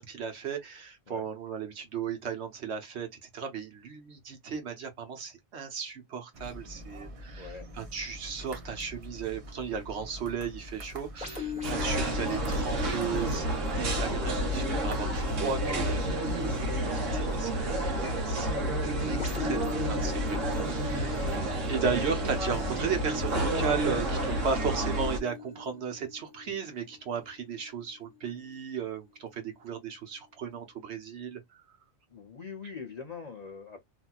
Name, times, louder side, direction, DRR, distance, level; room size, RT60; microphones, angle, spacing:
voice 1, 0.0-18.6 18.8-31.6, right 6 dB, 65° right, 1.1 m, -35 dB
sound 1, 6.3-16.8, right 1 dB, 35° right, 0.7 m, -45 dB
voice 2, 7.4-7.7 18.8-19.1 32.1-33.8, left 5 dB, 45° left, 0.5 m, -43 dB
sound 2, 11.2-28.7 29.3-29.4, left 8 dB, 5° right, 1.0 m, -42 dB
sound 3, 11.6-25.2, right 1 dB, 90° right, 1.2 m, -30 dB
3.0 x 2.6 x 2.3 m
omnidirectional pair, 1.2 m